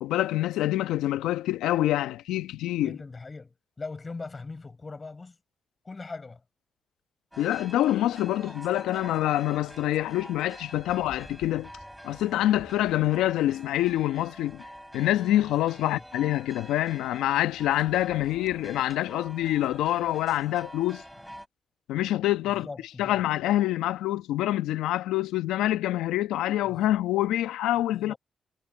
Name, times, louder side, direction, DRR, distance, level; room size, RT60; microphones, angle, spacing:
voice 1, 0.0-3.0 7.4-11.7 12.0-14.6 14.9-21.0 21.9-22.7 23.0-28.1, left 14 dB, 85° left, 1.3 m, -26 dB
voice 2, 2.8-5.4 5.8-6.4 15.8-16.0 22.4-23.3 26.7-26.9 27.9-28.2, left 3 dB, 40° left, 7.2 m, -40 dB
sound 1, 7.3-21.5, equal, 5° right, 7.7 m, -46 dB
hypercardioid pair, 45°, 0 cm